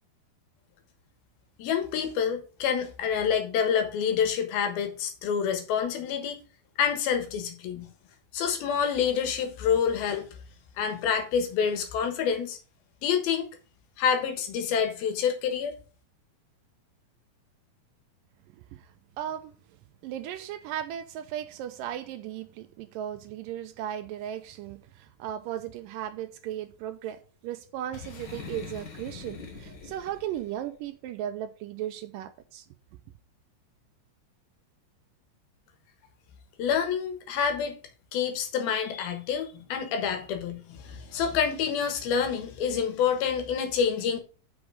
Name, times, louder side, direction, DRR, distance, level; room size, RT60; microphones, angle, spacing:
voice 1, 1.6-6.4 6.8-7.9 8.3-10.3 10.8-12.6 13.0-13.5 14.0-15.8 36.6-37.8 38.1-44.2, left 7 dB, 90° left, 3.2 m, -27 dB
voice 2, 18.5-19.5 20.0-32.7, right 11 dB, 80° right, 2.1 m, -36 dB
Boom, 27.9-30.6, left 5 dB, 55° left, 1.2 m, -43 dB
7.3 x 6.2 x 4.9 m
omnidirectional pair, 4.2 m